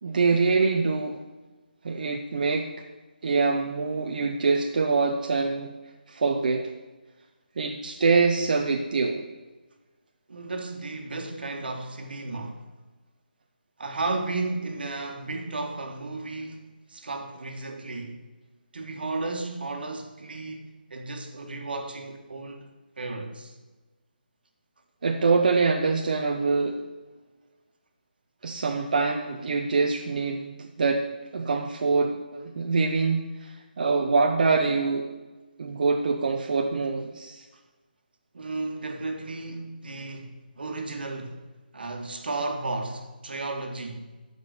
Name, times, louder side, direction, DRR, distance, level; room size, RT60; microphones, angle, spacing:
voice 1, 0.0-1.2 1.8-2.7 3.2-5.7 6.1-6.7 7.6-9.2 25.0-26.8 28.4-31.1 31.3-35.1 35.6-37.5, right 4 dB, 55° right, 0.8 m, -24 dB
voice 2, 10.3-12.6 13.8-18.2 18.7-22.7 23.0-23.5 38.3-41.4 41.7-44.1, right 3 dB, 70° right, 1.6 m, -34 dB
11.0 x 5.2 x 6.6 m
hypercardioid pair, 165°, 5 cm